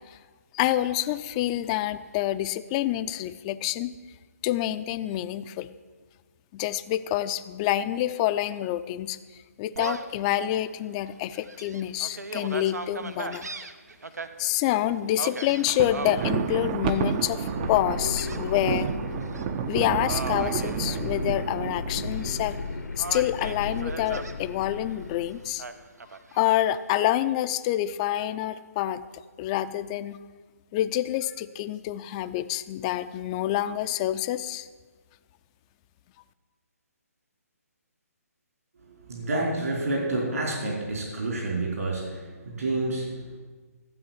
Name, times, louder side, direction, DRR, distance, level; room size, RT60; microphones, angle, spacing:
voice 1, 0.5-4.0 4.4-5.7 6.5-9.2 9.6-13.5 14.4-18.9 19.7-22.6 23.0-25.6 26.3-29.0 29.4-30.2 30.7-34.7, left 13 dB, 25° left, 12 dB, 0.5 m, -27 dB
Gull seagull, 9.7-10.2 10.7-10.8 11.3-14.3 15.2-16.3 16.8-17.3 18.2-18.9 19.2-19.4 20.0-21.5 21.9-22.6 23.0-24.4 25.6-26.6, right 3 dB, 85° right, 1.0 m, -37 dB
Thunder, 15.5-22.7, right 8 dB, 30° right, 0.5 m, -31 dB
sound 1, 16.0-25.6, left 4 dB, 80° left, 1.1 m, -36 dB
voice 2, 38.7-43.4, right 2 dB, 65° right, -2 dB, 4.8 m, -29 dB
13.5 x 7.7 x 7.4 m, 1.4 s
figure-of-eight pair, 145°, 9 cm